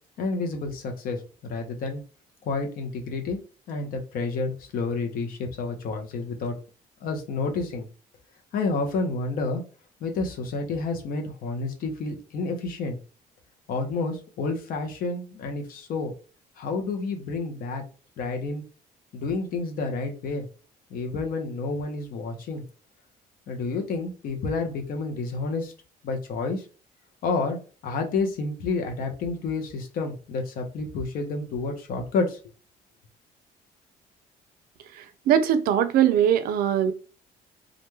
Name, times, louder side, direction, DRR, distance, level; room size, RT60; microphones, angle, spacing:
voice 1, 0.2-2.0 2.4-3.4 3.7-6.6 7.0-7.8 8.5-9.6 10.0-13.0 13.7-16.1 16.6-17.8 18.2-18.6 19.1-20.5 20.9-22.6 23.5-25.7 26.0-26.7 27.2-27.6 27.8-32.4, left 3 dB, 65° left, 0.8 m, -29 dB
voice 2, 35.3-36.9, right 9 dB, 70° right, 0.4 m, -20 dB
2.5 x 2.2 x 3.1 m
cardioid pair, 105°, 16 cm